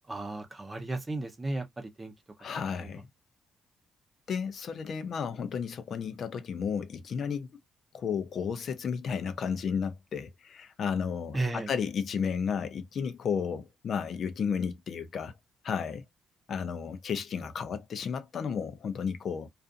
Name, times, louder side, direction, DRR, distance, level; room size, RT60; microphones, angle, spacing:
voice 1, 0.1-2.1 2.5-2.9 11.3-11.7, right 2 dB, 20° right, 0.7 m, -34 dB
voice 2, 2.4-3.1 4.3-7.5 7.9-15.4 15.6-16.0 16.5-19.5, left 6 dB, 55° left, 0.5 m, -33 dB
2.4 x 2.4 x 2.4 m
cardioid pair, 90°, 0 cm